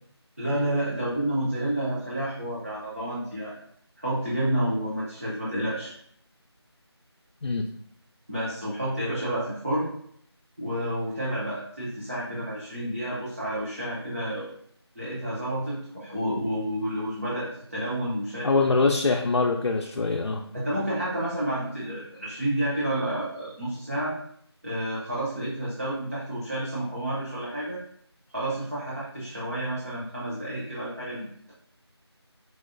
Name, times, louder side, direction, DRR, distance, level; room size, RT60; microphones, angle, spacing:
voice 1, 0.4-3.5 4.0-5.9 8.3-9.9 10.6-14.5 15.0-18.8 20.5-24.1 24.6-27.8 28.3-31.5, right 1 dB, 30° right, -7 dB, 0.6 m, -30 dB
voice 2, 18.4-20.4, left 3 dB, 75° left, 1 dB, 0.4 m, -23 dB
4.6 x 2.1 x 2.5 m, 0.67 s
figure-of-eight pair, 175°, 14 cm